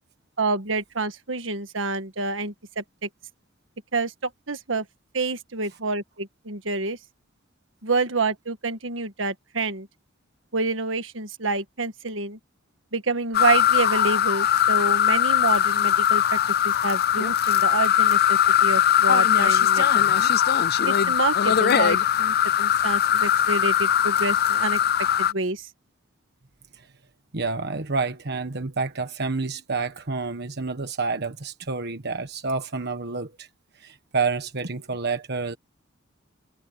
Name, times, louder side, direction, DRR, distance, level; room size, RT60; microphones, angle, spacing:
voice 1, 0.4-3.1 3.9-4.8 5.1-7.0 7.8-9.9 10.5-12.4 12.9-16.4 16.6-19.9 20.2-20.3 20.9-24.8 25.2-25.7, right 3 dB, 70° right, 1.7 m, -28 dB
sound 1, 13.3-25.3, left 10 dB, 55° left, 0.5 m, -20 dB
voice 2, 27.3-33.5 33.8-35.6, right 4 dB, 55° right, 1.4 m, -29 dB
head